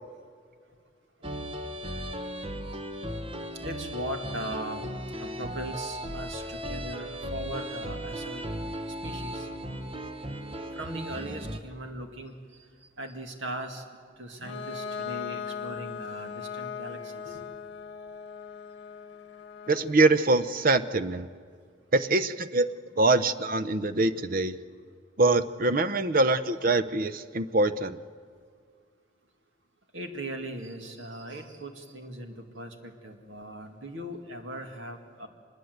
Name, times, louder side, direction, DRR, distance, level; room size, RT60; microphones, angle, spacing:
sound 1, 1.2-11.6, equal, 25° right, 1.0 m, -36 dB
voice 1, 3.6-4.9 5.2-8.4 9.0-9.5 10.7-12.3 13.0-13.8 14.2-17.4 29.9-35.3, right 1 dB, 70° right, 5 dB, 2.2 m, -39 dB
Bowed string instrument, 14.4-20.0, left 6 dB, 60° left, 1.3 m, -39 dB
voice 2, 19.7-21.3 21.9-22.7 23.0-24.5 25.2-28.0, right 2 dB, 45° right, 13 dB, 0.7 m, -24 dB
24.5 x 21.5 x 8.0 m, 2.1 s
head